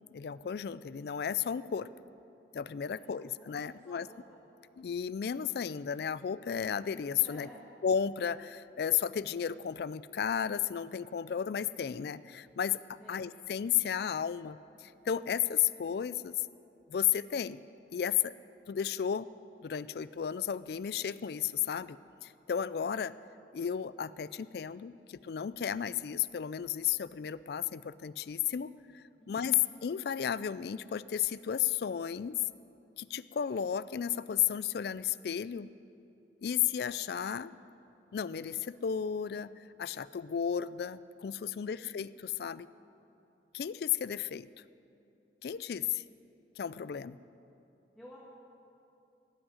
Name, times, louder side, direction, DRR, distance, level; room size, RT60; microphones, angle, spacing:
voice 1, 0.1-1.9 2.5-4.1 4.8-7.5 7.8-16.3 16.9-17.6 17.9-18.3 18.7-19.3 19.6-23.1 23.5-32.4 33.0-35.7 36.4-37.5 38.1-42.7 43.5-44.5 45.4-46.0 46.6-47.2, left 8 dB, 60° left, 17 dB, 0.3 m, -33 dB
voice 2, 2.9-4.4 7.2-7.6 12.9-13.1 29.2-29.6 41.6-41.9 47.9-48.2, equal, 5° left, -6 dB, 1.7 m, -54 dB
17.0 x 6.2 x 9.7 m, 2.8 s
head